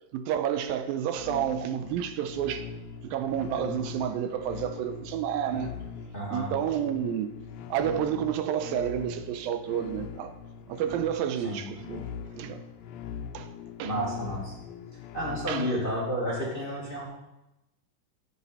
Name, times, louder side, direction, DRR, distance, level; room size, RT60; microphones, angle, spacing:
voice 1, 0.1-2.7 3.0-5.7 6.3-7.3 7.7-10.3 10.7-12.6 13.3-13.5 13.8-14.0 15.5-15.8, right 9 dB, 85° right, 2.4 m, -30 dB
sound 1, 1.1-16.0, left 7 dB, 80° left, 2.4 m, -41 dB
voice 2, 6.1-6.5 11.4-11.6 13.8-14.5 15.1-17.1, equal, 20° left, 1.8 m, -31 dB
12.5 x 8.0 x 5.5 m
omnidirectional pair, 4.2 m